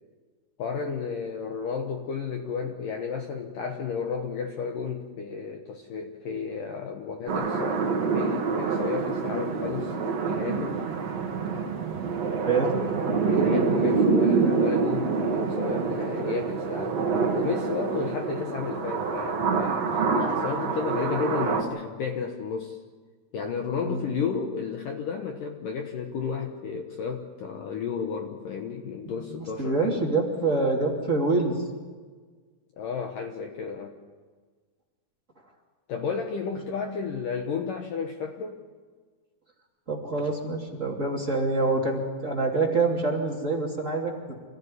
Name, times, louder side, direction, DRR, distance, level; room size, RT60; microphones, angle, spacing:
voice 1, 0.6-9.9 10.2-10.8 13.3-17.0 17.3-22.8 23.3-30.0 32.8-33.9 35.9-38.6, left 6 dB, 75° left, 4 dB, 2.0 m, -32 dB
sound 1, 7.3-21.6, right 5 dB, 45° right, 2.4 m, -26 dB
voice 2, 12.4-12.8 23.8-24.1 29.1-31.6 39.9-44.1, right 3 dB, 25° right, -1 dB, 1.9 m, -26 dB
26.5 x 15.0 x 9.8 m, 1.5 s
omnidirectional pair, 5.6 m